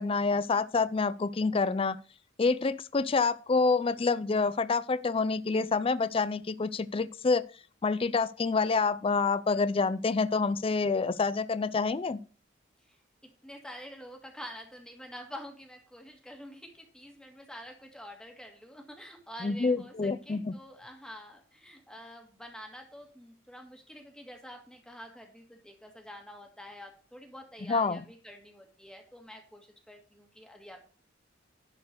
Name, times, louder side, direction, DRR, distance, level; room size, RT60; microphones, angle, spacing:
voice 1, 0.0-2.0 2.4-7.4 7.8-12.2 19.4-20.5 27.7-28.0, left 4 dB, 30° left, 0.4 m, -27 dB
voice 2, 13.4-30.8, equal, 5° left, 1.7 m, -47 dB
11.5 x 4.5 x 6.4 m
head